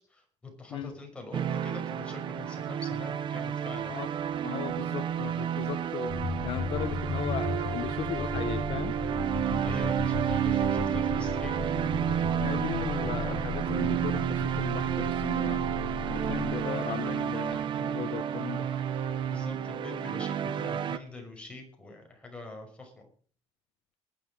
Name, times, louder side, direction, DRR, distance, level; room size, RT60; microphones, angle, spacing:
voice 1, 0.1-4.0 9.6-11.6 19.3-23.0, left 3 dB, 10° left, 1 dB, 5.7 m, -44 dB
sound 1, 1.3-21.0, right 9 dB, 45° right, 0.9 m, -31 dB
sound 2, 3.6-19.4, right 7 dB, 90° right, 3.6 m, -47 dB
voice 2, 4.4-6.1 6.4-9.0 12.4-15.7 16.1-18.7, left 11 dB, 60° left, 10 dB, 1.2 m, -37 dB
sound 3, 6.1-16.5, left 4 dB, 25° left, 2.3 m, -36 dB
19.5 x 10.5 x 5.1 m, 0.44 s
cardioid pair, 150°, 11 cm